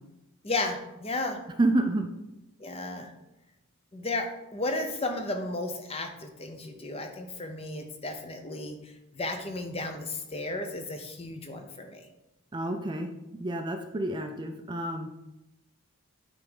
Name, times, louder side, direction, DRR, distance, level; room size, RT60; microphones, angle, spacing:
voice 1, 0.4-1.4 2.6-3.1 3.9-12.1, left 2 dB, 25° left, 6 dB, 0.7 m, -34 dB
voice 2, 1.6-2.1 12.5-13.1 13.4-15.1, right 2 dB, 20° right, 5 dB, 0.4 m, -28 dB
8.5 x 3.5 x 5.4 m, 0.94 s
head